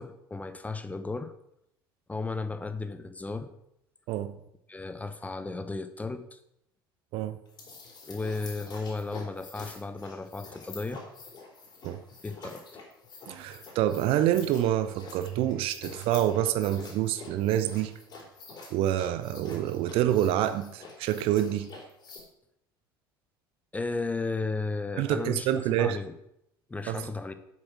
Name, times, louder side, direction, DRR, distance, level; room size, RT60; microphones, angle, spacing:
voice 1, 0.0-1.3 2.1-3.5 4.7-6.4 8.1-11.4 12.2-12.6 23.7-26.1 26.7-27.3, left 3 dB, 10° left, 11 dB, 0.8 m, -34 dB
sound 1, 7.5-22.2, left 3 dB, 35° left, 3.7 m, -47 dB
voice 2, 13.3-17.9 18.7-21.7 25.0-26.0 26.9-27.0, right 12 dB, 50° right, 12 dB, 0.7 m, -27 dB
7.9 x 7.2 x 6.1 m, 0.79 s
figure-of-eight pair, 65°, 12 cm